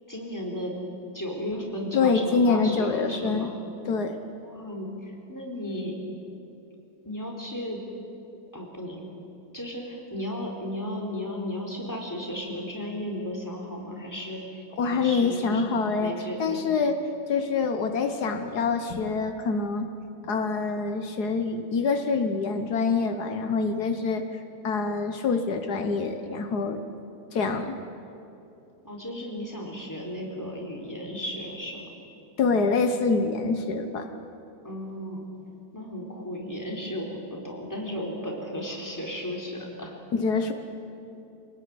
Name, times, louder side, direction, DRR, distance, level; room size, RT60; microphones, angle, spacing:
voice 1, 0.1-0.8 1.1-3.5 4.4-6.0 7.0-7.8 8.5-9.0 9.5-15.7 16.0-16.6 28.8-31.9 34.6-35.2 35.7-40.0, equal, 10° left, -1 dB, 4.3 m, -35 dB
voice 2, 1.9-3.5 3.9-4.2 14.8-16.1 16.4-17.0 17.3-19.9 20.2-26.8 27.3-27.8 32.4-34.1 40.1-40.5, left 4 dB, 80° left, 7 dB, 1.8 m, -25 dB
26.5 x 19.0 x 9.7 m, 2.8 s
omnidirectional pair, 1.7 m